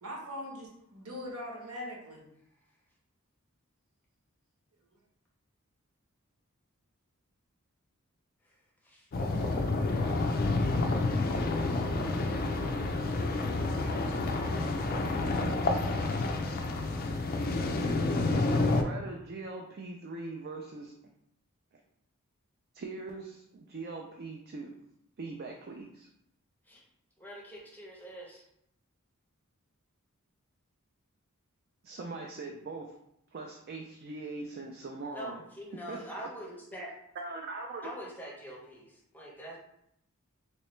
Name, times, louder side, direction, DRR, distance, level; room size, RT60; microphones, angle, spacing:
voice 1, 0.0-2.2, left 1 dB, 80° right, -2 dB, 1.0 m, -41 dB
sound 1, 9.1-18.8, left 2 dB, 40° left, 0.4 m, -29 dB
voice 2, 9.4-10.4 26.7-26.8 27.2-28.4 35.1-36.9 37.8-39.6, right 1 dB, 10° left, -2 dB, 0.6 m, -45 dB
voice 3, 18.7-20.9 22.7-24.7 25.2-26.1 31.8-32.9 33.3-35.4 35.9-36.3 37.1-37.9, right 3 dB, 45° right, 1 dB, 0.4 m, -41 dB
3.2 x 3.1 x 3.1 m, 0.76 s
head